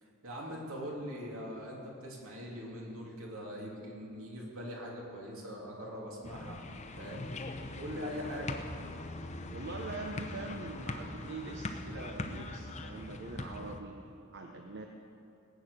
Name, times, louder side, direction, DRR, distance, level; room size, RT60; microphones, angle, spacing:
voice 1, 0.0-6.6 7.0-7.2 7.8-8.6, equal, 70° right, -2 dB, 2.9 m, -42 dB
sound 1, 6.2-13.8, left 2 dB, 30° left, 0.7 m, -41 dB
voice 2, 9.5-14.0 14.3-14.9, right 3 dB, 50° right, 3 dB, 0.8 m, -43 dB
18.5 x 8.9 x 6.6 m, 2.8 s
head